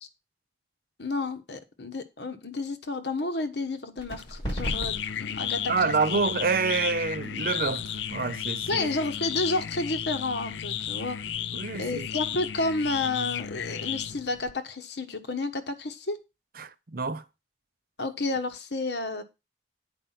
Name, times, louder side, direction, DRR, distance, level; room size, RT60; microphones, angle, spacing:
voice 1, 1.0-5.6 6.1-6.2 8.7-11.2 11.8-16.2 18.0-19.2, left 3 dB, 70° left, 1.3 m, -31 dB
sound 1, 4.0-11.3, equal, 25° left, 6.1 m, -40 dB
sound 2, 4.1-14.5, left 9 dB, 85° left, 0.5 m, -34 dB
voice 2, 5.7-8.9 11.5-12.1 16.6-17.2, right 4 dB, 55° right, 0.7 m, -27 dB
9.0 x 5.1 x 5.8 m
head